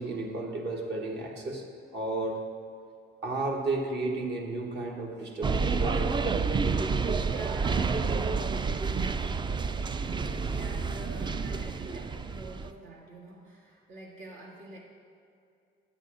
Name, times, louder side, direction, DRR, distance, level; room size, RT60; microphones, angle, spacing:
voice 1, 0.0-1.6 1.9-2.4 3.2-6.2, right 2 dB, 60° right, 1 dB, 1.3 m, -32 dB
sound 1, 5.4-12.7, right 4 dB, 25° right, 0.3 m, -29 dB
voice 2, 7.2-7.8 10.0-14.8, right 2 dB, 80° right, -3 dB, 1.9 m, -46 dB
10.5 x 8.0 x 3.8 m, 2.4 s
cardioid pair, 90°, 20 cm